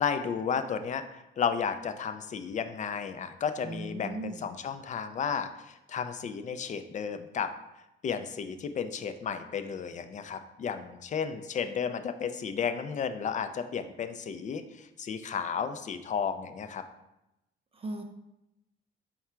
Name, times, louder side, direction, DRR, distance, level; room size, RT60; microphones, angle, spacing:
voice 1, 0.0-7.5 8.0-16.8, left 7 dB, 40° left, 9 dB, 0.4 m, -33 dB
voice 2, 3.6-4.4 17.7-18.0, right 2 dB, 30° right, 4 dB, 0.4 m, -37 dB
4.7 x 2.2 x 4.3 m, 0.91 s
cardioid pair, 90°, 20 cm